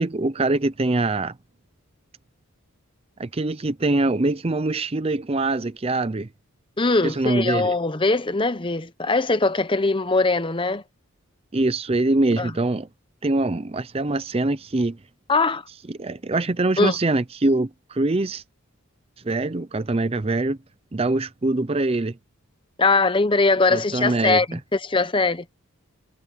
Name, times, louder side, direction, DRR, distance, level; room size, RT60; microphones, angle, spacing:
voice 1, 0.0-1.4 3.2-6.3 7.0-7.7 11.5-12.9 13.2-15.0 15.9-18.4 19.2-20.6 20.9-22.2 23.7-24.4, right 2 dB, 25° right, 0.6 m, -23 dB
voice 2, 6.8-10.8 12.4-12.5 15.3-15.6 16.8-17.0 22.8-25.4, left 3 dB, 25° left, 0.9 m, -21 dB
head